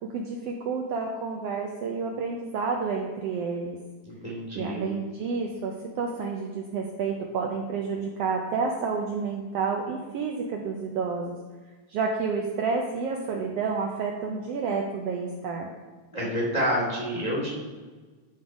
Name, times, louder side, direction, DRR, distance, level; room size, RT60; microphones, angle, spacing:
voice 1, 0.0-3.8 4.5-11.4 11.9-15.7, right 5 dB, 75° right, 1 dB, 1.5 m, -30 dB
voice 2, 4.1-4.9 16.1-17.5, equal, 20° left, -4 dB, 1.4 m, -28 dB
11.5 x 3.9 x 4.8 m, 1.4 s
omnidirectional pair, 3.3 m